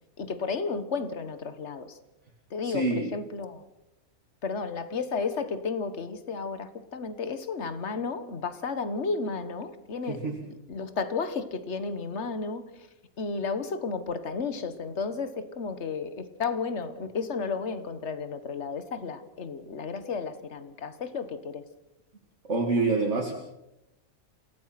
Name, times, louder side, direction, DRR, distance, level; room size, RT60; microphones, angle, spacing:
voice 1, 0.2-2.0 2.5-3.6 4.4-10.3 10.7-12.9 13.2-21.6, left 4 dB, 55° left, 11 dB, 1.7 m, -33 dB
voice 2, 2.6-3.1 10.1-10.4 22.5-23.3, right 3 dB, 55° right, 0 dB, 2.5 m, -26 dB
28.0 x 17.0 x 5.9 m, 0.90 s
omnidirectional pair, 1.5 m